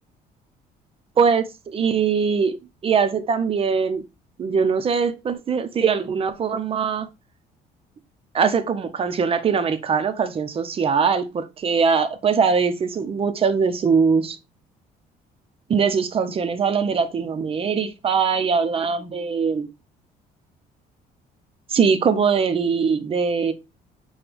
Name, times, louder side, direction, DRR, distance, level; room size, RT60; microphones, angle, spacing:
voice 1, 1.2-2.6 2.8-4.0 4.4-7.1 8.3-14.4 15.7-19.7 21.7-23.5, right 6 dB, 35° right, 0.6 m, -21 dB
5.9 x 2.3 x 3.4 m
cardioid pair, 110°, 17 cm